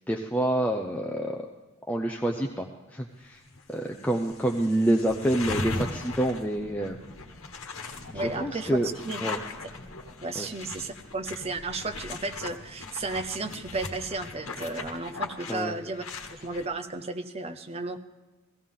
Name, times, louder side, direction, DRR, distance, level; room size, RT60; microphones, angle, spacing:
voice 1, 0.1-1.4 1.9-2.7 2.9-3.4 3.7-7.0 8.1-8.9 9.2-9.4 10.4-10.5 15.5-15.8, right 1 dB, 5° left, 1 dB, 0.6 m, -27 dB
sound 1, 3.5-3.6 4.0-16.7, left 3 dB, 70° left, 1.3 m, -39 dB
voice 2, 8.1-9.2 10.2-18.0, right 3 dB, 30° right, 9 dB, 0.7 m, -34 dB
16.0 x 15.5 x 3.7 m, 1.2 s
head